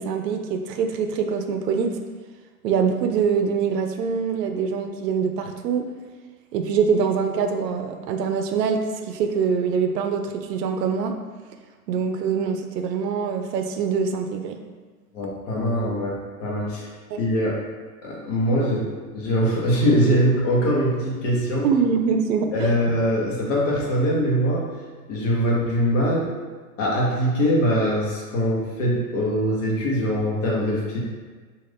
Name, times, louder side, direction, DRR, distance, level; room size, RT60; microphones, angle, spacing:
voice 1, 0.0-1.9 2.6-5.9 6.5-11.1 11.9-14.6 17.1-17.2 21.6-22.7, right 6 dB, 85° right, 5 dB, 0.6 m, -24 dB
voice 2, 15.1-16.9 17.2-17.6 18.0-18.9 19.1-21.7 22.5-24.7 25.1-26.3 26.8-31.0, equal, 50° left, -4 dB, 1.0 m, -22 dB
2.5 x 2.4 x 3.4 m, 1.4 s
hypercardioid pair, 145°, 48 cm